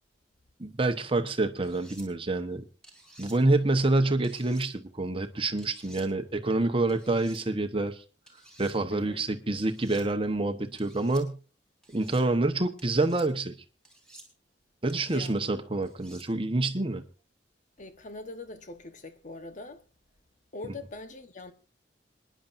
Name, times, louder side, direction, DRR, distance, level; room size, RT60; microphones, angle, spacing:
voice 1, 0.6-2.6 3.2-8.0 8.6-11.4 11.9-13.6 14.8-17.0, right 2 dB, 30° right, 1.1 m, -27 dB
sound 1, 1.6-2.1 2.8-3.4 4.2-4.7 5.6-6.1 6.9-7.4 8.3-8.8 9.6-10.1 10.8-11.2 11.8-12.2 12.8-13.3 13.8-14.3 14.9-15.3 15.8-16.3, right 1 dB, 5° left, 3.5 m, -52 dB
voice 2, 8.9-9.2 15.1-15.4 17.8-19.8 20.5-21.5, left 2 dB, 45° left, 1.2 m, -42 dB
26.5 x 10.5 x 2.6 m
head